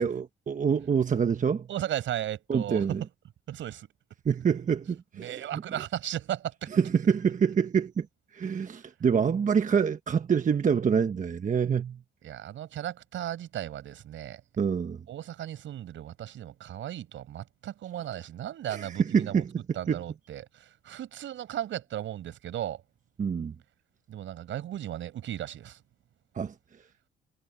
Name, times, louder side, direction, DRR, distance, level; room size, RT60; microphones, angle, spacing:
voice 1, 0.0-1.7 2.5-3.0 4.2-4.8 5.2-5.8 6.7-8.1 8.3-12.0 14.6-15.0 18.7-20.0 23.2-23.5 26.3-26.5, right 6 dB, 40° right, 1.2 m, -26 dB
voice 2, 1.7-3.0 3.5-3.9 5.1-6.7 12.2-14.4 15.1-19.4 19.7-22.8 24.1-25.8, right 11 dB, 75° right, 7.0 m, -36 dB
cardioid pair, 90°, 20 cm